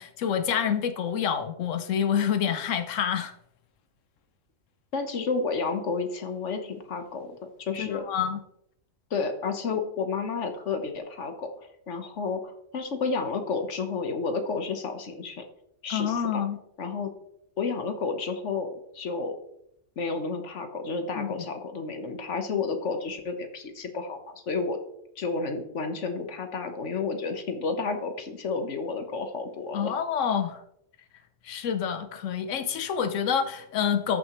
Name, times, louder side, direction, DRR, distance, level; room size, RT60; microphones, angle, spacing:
voice 1, 0.0-3.3 7.8-8.4 15.9-16.6 21.2-21.3 29.7-30.6 31.4-34.2, left 8 dB, 90° left, 9 dB, 1.1 m, -27 dB
voice 2, 4.9-8.0 9.1-15.4 15.8-16.4 16.8-17.1 17.6-19.4 20.0-24.8 25.2-29.9, left 4 dB, 70° left, 6 dB, 1.4 m, -31 dB
14.0 x 6.2 x 3.1 m, 0.75 s
omnidirectional pair, 1.3 m